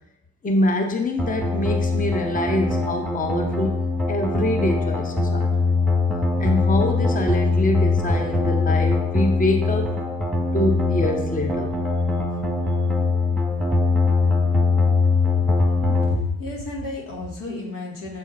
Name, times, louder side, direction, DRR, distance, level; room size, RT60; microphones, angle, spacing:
voice 1, 0.4-3.7 4.1-5.5 6.4-10.0 10.5-11.7 15.9-16.0, left 1 dB, 25° left, 4 dB, 0.8 m, -25 dB
sound 1, 1.2-16.2, left 3 dB, ahead, 1.3 m, -22 dB
voice 2, 16.1-18.2, left 2 dB, 75° left, -2 dB, 1.9 m, -31 dB
7.5 x 3.6 x 4.2 m, 0.84 s
supercardioid pair, 65°, 34 cm